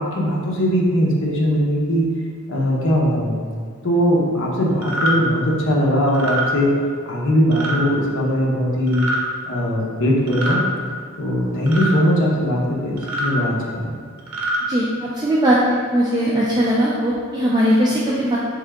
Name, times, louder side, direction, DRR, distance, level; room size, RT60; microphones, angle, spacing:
voice 1, 0.0-2.1 2.5-3.3 3.8-6.7 7.1-9.0 9.5-10.6 11.2-13.9, equal, 55° left, -3 dB, 0.8 m, -20 dB
sound 1, 4.8-5.1 6.1-6.4 7.5-7.8 8.9-9.2 10.3-10.6 11.7-11.9 13.0-13.3 14.2-14.6, right 1 dB, 60° right, 0.8 m, -24 dB
voice 2, 14.7-18.4, equal, 20° right, -6 dB, 0.3 m, -19 dB
3.6 x 3.5 x 3.4 m, 2.2 s
head